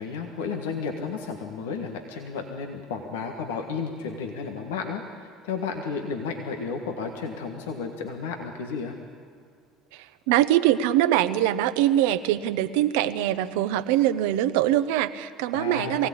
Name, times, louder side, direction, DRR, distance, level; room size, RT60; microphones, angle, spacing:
voice 1, 0.0-8.9 15.5-16.1, left 5 dB, 85° left, 3 dB, 1.6 m, -32 dB
voice 2, 9.9-16.1, right 13 dB, 75° right, 11 dB, 0.8 m, -23 dB
22.5 x 17.0 x 8.6 m, 2.1 s
hypercardioid pair, 70°, 0 cm